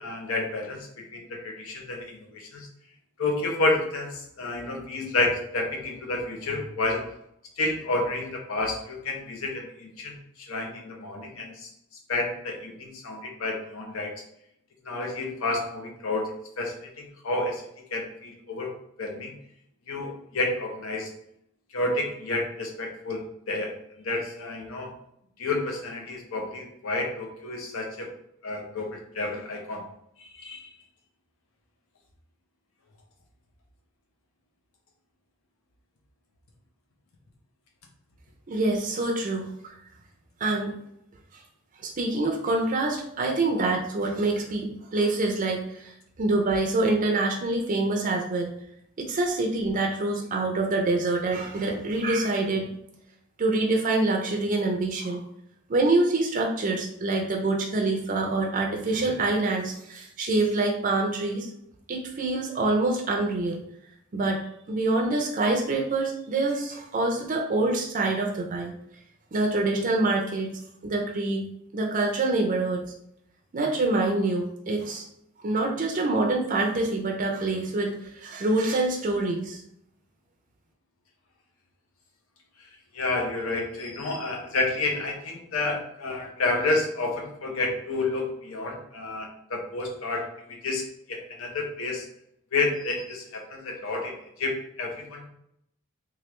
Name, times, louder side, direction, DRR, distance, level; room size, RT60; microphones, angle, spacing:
voice 1, 0.0-2.7 3.2-7.1 7.6-10.2 10.5-11.7 12.1-14.1 14.8-17.6 17.9-18.7 19.0-19.3 19.9-21.1 21.7-24.9 25.4-28.1 28.4-29.9 30.2-30.7 82.6-82.7 82.9-92.1 92.5-95.3, left 2 dB, 70° left, 1 dB, 0.7 m, -30 dB
voice 2, 38.5-39.7 40.4-40.7 41.8-48.5 49.0-52.7 53.4-55.2 55.7-61.5 61.9-63.6 64.1-64.4 64.7-68.7 69.3-70.5 70.8-71.4 71.7-72.8 73.5-75.0 75.4-79.6, right 2 dB, 40° right, 1 dB, 0.5 m, -26 dB
3.1 x 2.4 x 3.0 m, 0.74 s
head